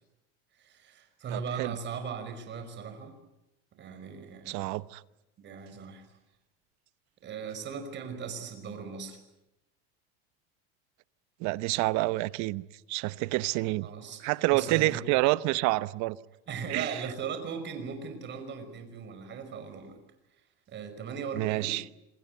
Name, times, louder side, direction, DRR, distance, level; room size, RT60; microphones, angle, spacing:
voice 1, 0.6-3.2 3.8-4.6 5.4-6.0 7.2-9.2 13.8-14.2 14.5-15.0 16.5-20.0 20.7-21.8, right 6 dB, 35° right, 5.5 m, -38 dB
voice 2, 1.3-1.7 4.5-5.0 11.4-13.9 14.2-16.2 16.7-17.0 21.3-21.8, right 20 dB, 60° right, 0.9 m, -28 dB
27.5 x 20.5 x 9.3 m
supercardioid pair, 140°, 32 cm